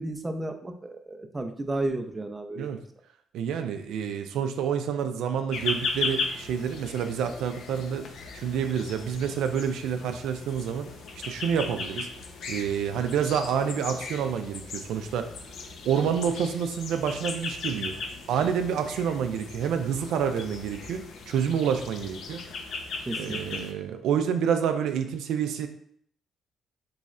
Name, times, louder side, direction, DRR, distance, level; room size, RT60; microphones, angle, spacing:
voice 1, 0.0-2.8 23.1-23.6, right 2 dB, 20° right, 5 dB, 0.4 m, -33 dB
voice 2, 3.3-8.1 8.3-10.9 11.2-12.1 12.5-15.4 15.8-17.9 18.3-22.4 23.2-25.7, right 7 dB, 85° right, 7 dB, 0.3 m, -28 dB
sound 1, 5.5-23.7, left 4 dB, 70° left, 0.5 m, -37 dB
4.0 x 3.1 x 2.4 m, 0.63 s
cardioid pair, 90°, 0 cm